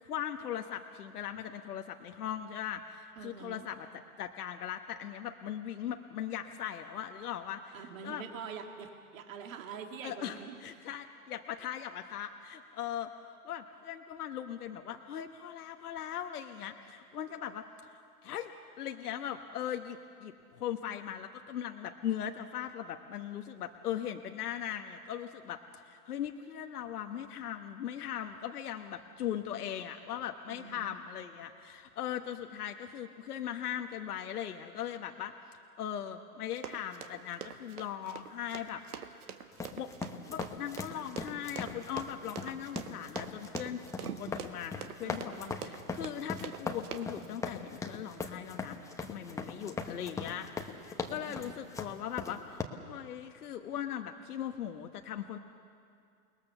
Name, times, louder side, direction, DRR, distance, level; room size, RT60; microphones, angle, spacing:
voice 1, 0.0-3.9 4.2-8.2 10.0-13.1 13.4-18.5 18.8-35.3 35.8-38.8 39.1-39.9 40.3-55.4, left 10 dB, 80° left, 5 dB, 1.3 m, -39 dB
voice 2, 3.2-3.7 7.7-10.6 30.5-30.9 45.0-45.6 51.1-51.5, right 6 dB, 60° right, 3 dB, 2.2 m, -45 dB
Run, 36.6-47.3, right 8 dB, 80° right, 1.6 m, -44 dB
sound 1, 39.5-52.6, left 4 dB, 5° left, 1.1 m, -40 dB
29.0 x 20.5 x 6.9 m, 2.4 s
hypercardioid pair, 135°, 45 cm